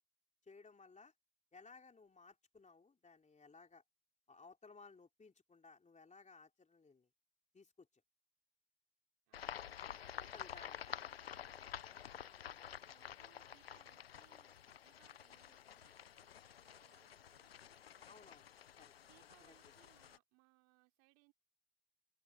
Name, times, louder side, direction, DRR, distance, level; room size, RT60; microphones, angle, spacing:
voice 1, 0.4-1.1 1.5-3.8 4.3-7.1 7.5-7.9 10.2-10.9 18.1-18.5 18.8-18.9 19.4-19.5, left 4 dB, 25° left, 3.3 m, -60 dB
sound 1, 9.3-20.2, left 9 dB, 90° left, 1.0 m, -50 dB
voice 2, 9.3-10.6 11.4-18.1 19.0-21.3, right 30 dB, 70° right, 5.3 m, -73 dB
figure-of-eight pair, 55°, 29 cm